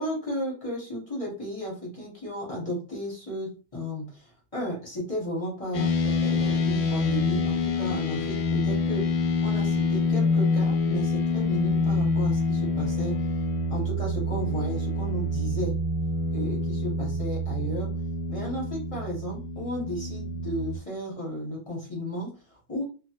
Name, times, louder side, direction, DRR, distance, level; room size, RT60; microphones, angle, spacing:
voice 1, 0.0-13.3 13.7-15.8 16.3-17.9 18.3-22.8, equal, 30° left, -4 dB, 0.6 m, -34 dB
sound 1, 5.7-20.8, left 3 dB, 85° left, 1.4 m, -26 dB
3.0 x 2.2 x 2.8 m, 0.36 s
omnidirectional pair, 2.0 m